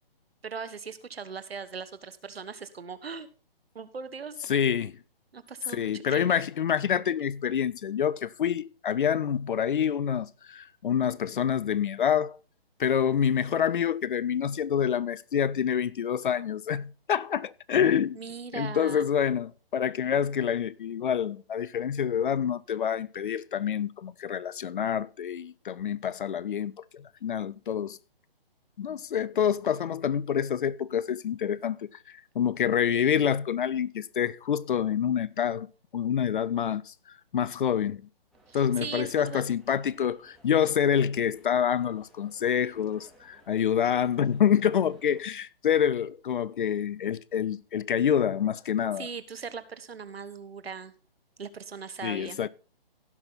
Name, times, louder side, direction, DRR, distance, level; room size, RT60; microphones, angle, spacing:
voice 1, 0.4-3.3 3.7-4.4 5.3-6.3 18.1-19.1 38.5-39.4 49.0-50.9 51.4-52.4, right 5 dB, 80° right, 1.4 m, -39 dB
voice 2, 4.5-4.9 5.7-12.4 12.8-18.2 18.5-28.0 28.8-35.7 35.9-36.9 37.3-38.0 38.5-49.1 52.0-52.5, left 8 dB, 55° left, 0.6 m, -27 dB
sound 1, 38.3-45.2, right 1 dB, ahead, 2.3 m, -60 dB
16.5 x 6.0 x 4.0 m
hypercardioid pair, 145°, 30 cm